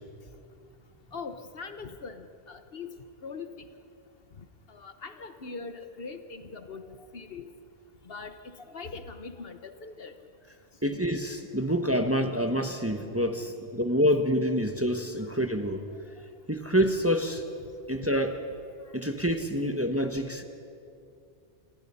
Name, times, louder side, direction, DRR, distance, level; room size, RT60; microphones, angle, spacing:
voice 1, 1.1-2.9 3.2-3.5 4.7-6.8 7.1-7.4 8.1-8.4 8.7-10.1 10.9-11.0 18.1-18.4, left 4 dB, 60° left, 9 dB, 1.2 m, -41 dB
voice 2, 10.8-15.8 16.5-17.4 17.9-18.4 18.9-20.4, equal, 15° right, 6 dB, 1.1 m, -27 dB
28.0 x 19.5 x 5.6 m, 2.4 s
omnidirectional pair, 1.1 m